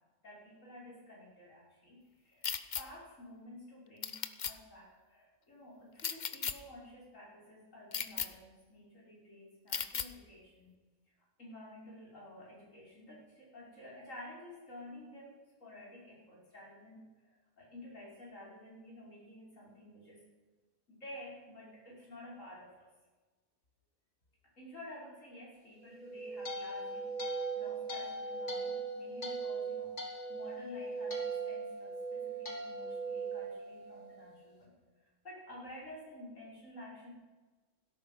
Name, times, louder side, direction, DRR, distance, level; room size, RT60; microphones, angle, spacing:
voice 1, 0.2-2.5 2.8-10.7 11.4-20.3 20.9-22.9 24.6-37.1, left 1 dB, 85° left, -4 dB, 5.8 m, -52 dB
sound 1, 2.4-2.8 4.0-4.5 6.0-6.5 7.9-8.3 9.7-10.1, left 7 dB, 45° left, 0.8 m, -35 dB
sound 2, 25.9-34.3, right 3 dB, 65° left, 2.9 m, -39 dB
17.0 x 13.0 x 5.6 m, 1.3 s
omnidirectional pair, 1.3 m